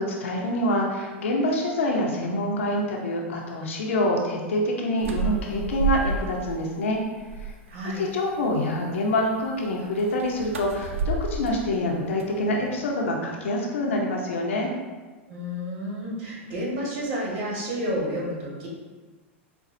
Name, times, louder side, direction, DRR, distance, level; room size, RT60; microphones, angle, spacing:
voice 1, 0.0-7.0 7.9-14.7, left 1 dB, 80° left, -1 dB, 0.7 m, -26 dB
sound 1, 5.0-6.5 6.9-7.8 10.0-12.8, right 4 dB, 90° right, 0.4 m, -31 dB
voice 2, 7.7-8.0 15.3-18.7, equal, 55° right, -4 dB, 1.5 m, -30 dB
5.2 x 2.3 x 2.7 m, 1.3 s
hypercardioid pair, 105°, 7 cm